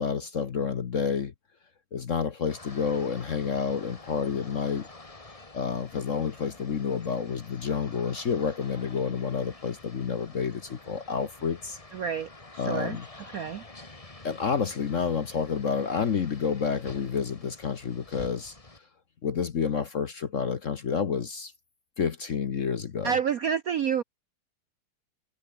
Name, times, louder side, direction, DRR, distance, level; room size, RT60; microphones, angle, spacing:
voice 1, 0.0-1.3 1.9-4.9 5.5-11.8 12.6-13.0 14.2-18.5 19.2-21.5 22.0-23.1, left 6 dB, 45° left, 1.1 m, -29 dB
sound 1, 2.5-18.8, left 2 dB, 15° left, 1.9 m, -48 dB
voice 2, 11.9-13.0 13.3-13.6 23.0-24.0, right 7 dB, 65° right, 0.9 m, -29 dB
omnidirectional pair, 2.3 m